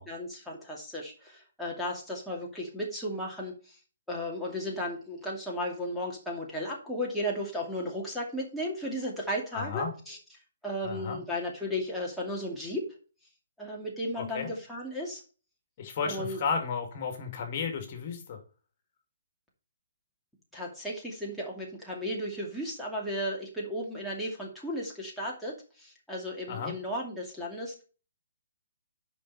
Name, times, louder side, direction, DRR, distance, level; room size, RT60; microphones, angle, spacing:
voice 1, 0.1-3.8 4.1-10.2 10.6-12.9 13.6-15.2 16.0-16.4 20.5-27.8, equal, ahead, -5 dB, 2.4 m, -35 dB
voice 2, 9.5-9.9 10.8-11.2 14.2-14.5 15.8-18.4 26.5-26.7, left 5 dB, 45° left, 5 dB, 2.5 m, -33 dB
9.9 x 5.5 x 4.2 m, 0.36 s
hypercardioid pair, 135°, 0 cm